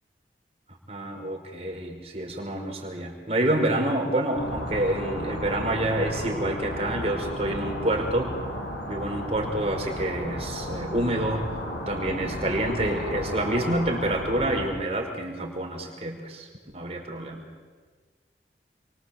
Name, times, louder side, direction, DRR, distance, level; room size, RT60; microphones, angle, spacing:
voice 1, 0.9-8.3 8.9-11.5 11.9-16.5 16.7-17.4, right 1 dB, 35° right, 2 dB, 5.1 m, -28 dB
sound 1, 4.3-14.7, left 1 dB, 90° left, 6.9 m, -34 dB
29.0 x 25.0 x 8.0 m, 1.5 s
head